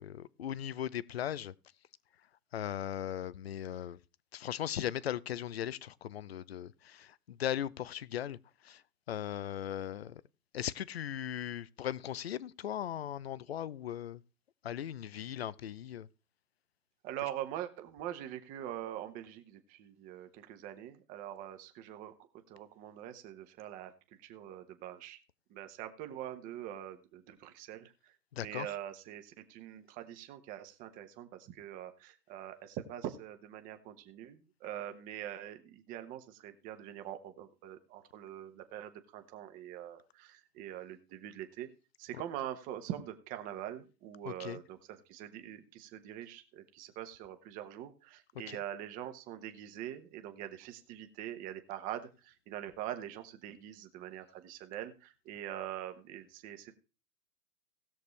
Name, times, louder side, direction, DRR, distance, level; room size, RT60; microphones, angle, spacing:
voice 1, 0.0-1.5 2.5-4.0 4.3-8.4 8.6-8.8 9.1-10.2 10.5-14.2 14.6-16.1 28.3-28.7 44.3-44.6 48.5-48.6, left 10 dB, 45° left, 0.4 m, -38 dB
voice 2, 17.0-25.2 25.5-41.7 42.0-56.7, right 11 dB, 15° right, 0.9 m, -44 dB
19.0 x 6.6 x 3.2 m
hypercardioid pair, 140°, 49 cm